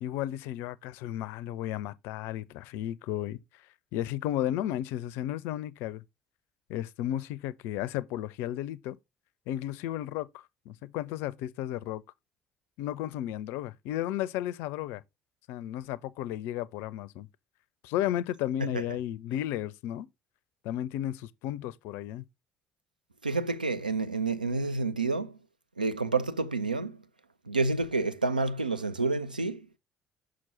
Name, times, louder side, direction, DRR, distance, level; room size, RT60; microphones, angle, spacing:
voice 1, 0.0-3.4 3.9-6.0 6.7-9.0 9.5-12.0 12.8-15.0 15.5-17.3 17.8-20.1 20.6-22.2, left 12 dB, 60° left, 0.4 m, -33 dB
voice 2, 23.2-25.3 25.8-27.0 27.5-29.6, right 3 dB, 90° right, 0.3 m, -29 dB
6.2 x 6.0 x 2.8 m
figure-of-eight pair, 50°, 4 cm